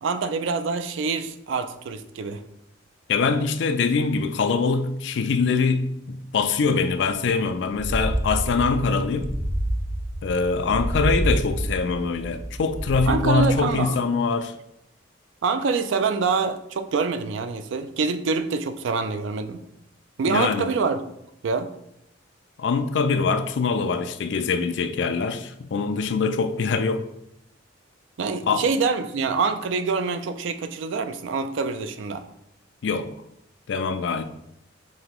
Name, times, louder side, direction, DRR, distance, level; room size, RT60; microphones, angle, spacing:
voice 1, 0.0-2.4 10.7-10.8 13.1-14.0 15.4-19.6 20.2-21.0 21.4-21.7 28.2-32.2, right 4 dB, 70° right, 0.4 m, -25 dB
voice 2, 3.1-9.3 10.2-14.5 20.3-20.7 22.6-27.1 28.5-28.6 32.8-33.1 33.7-34.2, left 4 dB, 60° left, 0.4 m, -23 dB
sound 1, 7.7-13.8, right 1 dB, 40° left, 0.9 m, -28 dB
5.3 x 2.9 x 3.0 m
head